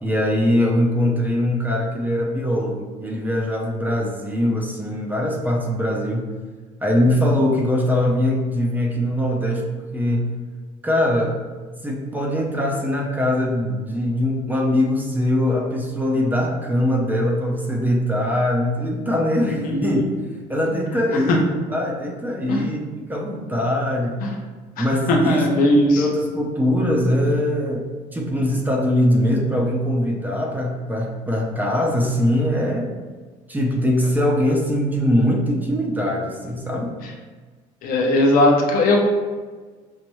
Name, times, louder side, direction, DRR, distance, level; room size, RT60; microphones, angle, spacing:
voice 1, 0.0-6.3 6.8-10.3 10.8-11.4 11.8-20.0 20.5-24.2 24.8-25.5 25.8-32.9 33.5-36.9, left 1 dB, 10° right, -1 dB, 0.7 m, -22 dB
voice 2, 19.7-20.1 21.3-21.4 22.5-22.6 24.2-24.3 24.8-26.0 37.8-39.0, left 1 dB, 65° left, 1 dB, 0.8 m, -18 dB
5.4 x 2.1 x 3.0 m, 1.4 s
supercardioid pair, 95°, 15 cm